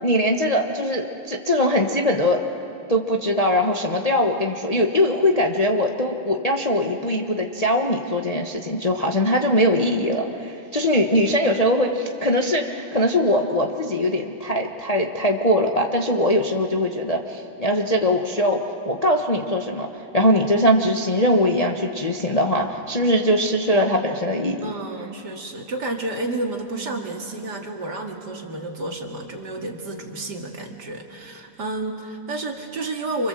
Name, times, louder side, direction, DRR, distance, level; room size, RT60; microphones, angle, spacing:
voice 1, 0.0-2.4 2.9-19.9 20.1-24.7, left 1 dB, 20° left, 1 dB, 1.1 m, -21 dB
voice 2, 24.6-33.3, right 2 dB, 50° right, 1 dB, 2.7 m, -30 dB
29.0 x 26.0 x 7.7 m, 2.6 s
omnidirectional pair, 2.3 m